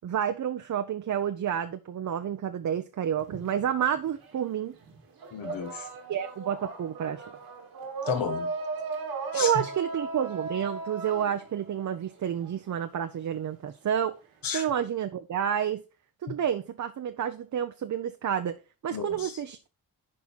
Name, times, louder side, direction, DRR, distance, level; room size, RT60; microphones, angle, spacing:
voice 1, 0.0-4.7 6.1-7.2 9.3-14.1 14.5-15.8 16.2-18.6 18.8-19.7, right 9 dB, 55° right, 0.7 m, -29 dB
sound 1, 3.2-4.4 4.7-12.5, right 3 dB, 85° right, 2.5 m, -37 dB
voice 2, 5.3-5.9 8.1-8.5 9.3-9.6 14.4-14.7 16.3-16.4 18.9-19.3, left 7 dB, 70° left, 1.3 m, -32 dB
11.0 x 4.4 x 4.1 m
cardioid pair, 85°, 36 cm